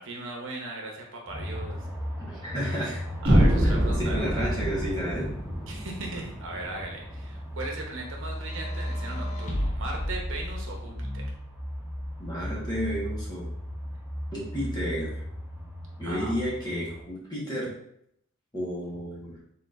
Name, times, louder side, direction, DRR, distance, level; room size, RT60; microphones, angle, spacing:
voice 1, 0.0-1.9 3.2-4.5 5.7-11.2 16.0-16.3, right 2 dB, 65° right, 0 dB, 0.9 m, -38 dB
sound 1, 1.3-17.0, equal, 10° right, 0.9 m, -36 dB
voice 2, 2.2-3.0 3.6-5.4 12.2-13.5 14.3-15.1 16.0-17.7 18.5-19.3, equal, 20° left, -6 dB, 1.4 m, -32 dB
sound 2, 3.2-7.2, right 1 dB, 25° right, 1.2 m, -25 dB
sound 3, 8.3-11.0 11.9-12.9, equal, 40° left, 0.8 m, -36 dB
4.2 x 3.9 x 2.6 m, 0.73 s
head